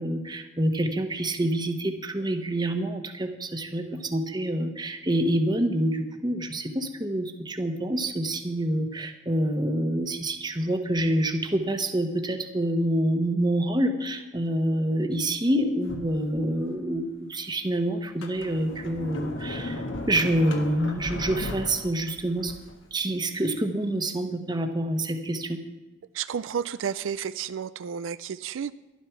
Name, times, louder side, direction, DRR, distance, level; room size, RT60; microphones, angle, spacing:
voice 1, 0.0-22.5 22.9-25.6, right 1 dB, 20° right, 6 dB, 1.1 m, -27 dB
Sliding door, 15.8-16.8 17.3-17.4 18.0-22.8, left 2 dB, 75° left, 1.4 m, -36 dB
voice 2, 26.1-28.7, right 7 dB, 80° right, 14 dB, 0.4 m, -31 dB
12.0 x 11.5 x 5.8 m, 1.1 s
head